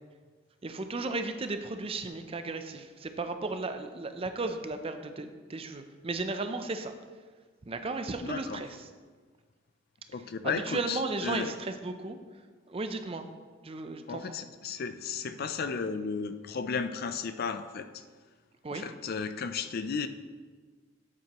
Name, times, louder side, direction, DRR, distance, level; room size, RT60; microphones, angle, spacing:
voice 1, 0.6-6.9 7.7-8.9 10.4-12.2 12.7-13.2 13.6-14.4 18.6-18.9, right 3 dB, 30° right, 8 dB, 0.5 m, -35 dB
voice 2, 8.2-8.6 10.1-11.5 14.1-18.0 18.7-20.1, left 5 dB, 50° left, 11 dB, 0.4 m, -34 dB
8.9 x 8.6 x 3.0 m, 1.5 s
head